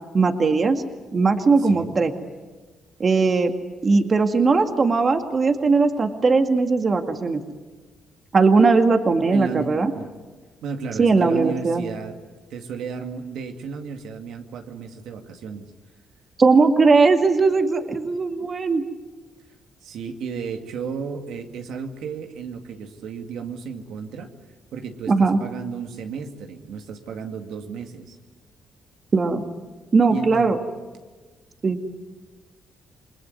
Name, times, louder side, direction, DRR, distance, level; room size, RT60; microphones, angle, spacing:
voice 1, 0.1-0.8 1.1-2.1 3.0-3.5 3.8-7.4 8.3-9.9 11.0-11.8 16.4-18.8 25.1-25.4 29.1-29.4 29.9-30.6 31.6-31.8, right 4 dB, 40° right, 6 dB, 2.1 m, -19 dB
voice 2, 1.6-1.9 9.3-9.7 9.9-10.1 10.6-12.2 12.5-15.7 19.8-24.3 24.7-28.2 30.1-30.6, right 6 dB, 80° right, 5 dB, 2.2 m, -33 dB
28.5 x 20.5 x 9.6 m, 1.3 s
cardioid pair, 90°, 0 cm